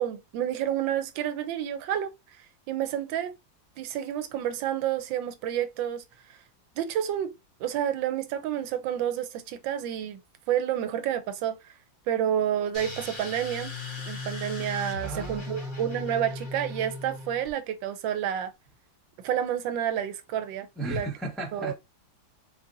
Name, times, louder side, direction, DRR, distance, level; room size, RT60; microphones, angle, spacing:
voice 1, 0.0-2.1 2.7-3.3 3.8-6.0 6.8-7.3 7.6-10.2 10.5-11.7 12.1-13.7 14.1-18.5 19.2-21.1 21.5-21.7, right 10 dB, 80° right, 1.3 m, -29 dB
sound 1, 12.7-17.5, left 2 dB, 30° left, 1.1 m, -37 dB
voice 2, 15.0-15.8 20.8-21.7, right 1 dB, ahead, 0.8 m, -35 dB
4.2 x 2.6 x 2.5 m
omnidirectional pair, 2.0 m